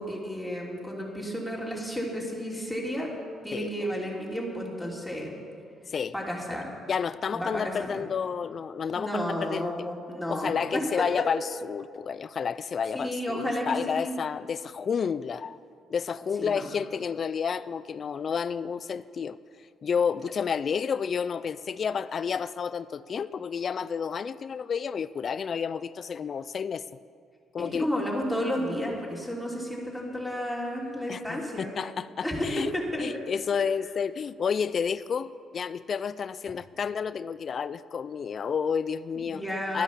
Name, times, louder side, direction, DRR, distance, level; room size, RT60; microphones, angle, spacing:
voice 1, 0.0-3.1 3.4-5.3 6.1-6.7 7.3-8.0 8.9-11.0 12.9-14.1 16.4-16.7 27.6-31.7 32.2-33.0 39.3-39.8, equal, ahead, -3 dB, 3.1 m, -32 dB
voice 2, 3.5-3.9 5.9-6.1 6.9-9.7 10.3-15.6 15.9-19.4 19.8-26.8 27.5-27.9 31.1-32.7 33.0-39.4 39.7-39.8, left 6 dB, 50° left, 16 dB, 0.4 m, -30 dB
12.0 x 10.0 x 7.2 m, 2.2 s
cardioid pair, 90°, 0 cm